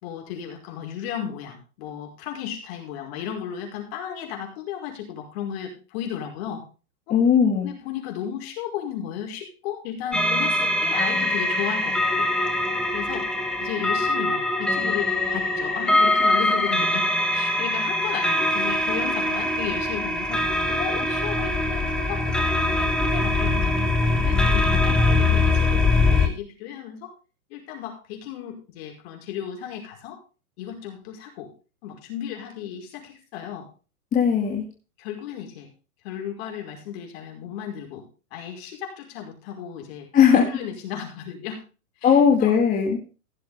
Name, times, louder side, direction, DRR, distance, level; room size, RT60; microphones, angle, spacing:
voice 1, 0.0-6.6 7.1-7.2 7.6-12.3 12.9-13.3 13.6-20.4 20.7-23.8 24.0-27.1 27.5-30.2 30.6-31.5 31.8-33.7 35.0-35.7 36.0-38.0 38.3-40.1 40.5-41.6 42.0-42.5, left 9 dB, 45° left, 2 dB, 5.3 m, -34 dB
voice 2, 7.1-7.7 34.1-34.6 40.1-40.5 42.0-43.0, left 7 dB, 20° left, 0 dB, 2.1 m, -18 dB
sound 1, 10.1-26.3, left 2 dB, ahead, 1.4 m, -22 dB
16.0 x 7.1 x 5.1 m, 0.35 s
hypercardioid pair, 140°, 43 cm